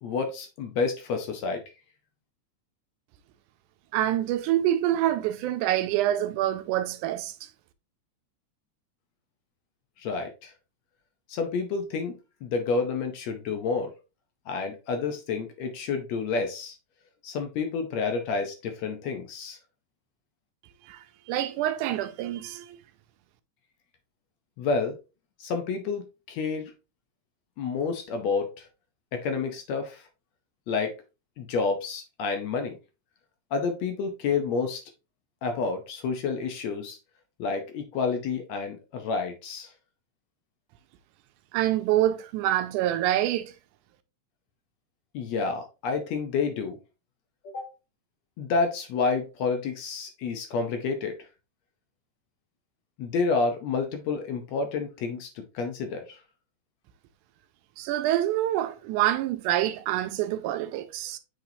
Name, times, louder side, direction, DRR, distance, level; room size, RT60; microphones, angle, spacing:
voice 1, 0.0-1.6 10.0-10.5 11.3-12.1 12.4-13.9 14.5-16.8 17.2-19.6 24.6-25.0 25.4-26.7 27.6-28.7 29.1-30.1 30.7-30.9 31.4-32.8 33.5-34.8 35.4-37.0 37.4-39.7 45.1-46.8 47.4-47.7 48.4-51.3 53.0-56.2, left 4 dB, 70° left, 1.8 m, -29 dB
voice 2, 3.9-7.4 20.9-22.8 41.5-43.5 57.8-61.2, right 13 dB, 80° right, 2.0 m, -26 dB
7.9 x 4.6 x 2.7 m
omnidirectional pair, 3.6 m